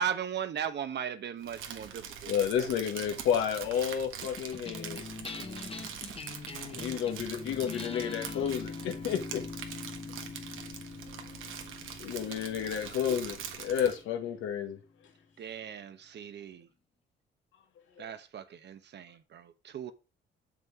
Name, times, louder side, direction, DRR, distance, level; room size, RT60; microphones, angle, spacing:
voice 1, 0.0-2.7 15.4-16.7 18.0-19.9, right 8 dB, 60° right, 1.1 m, -37 dB
Crumpling crinkling, 1.4-14.0, right 8 dB, 80° right, 1.5 m, -43 dB
voice 2, 2.3-5.0 6.7-9.4 12.0-14.8 17.9-18.0, left 8 dB, 90° left, 1.5 m, -31 dB
sound 1, 4.2-14.8, left 4 dB, 30° left, 1.0 m, -43 dB
voice 3, 5.0-5.7 6.9-7.0 10.5-12.5 13.7-13.8 15.0-15.5, left 8 dB, 70° left, 2.9 m, -55 dB
7.5 x 6.2 x 4.7 m
cardioid pair, 90°, 20 cm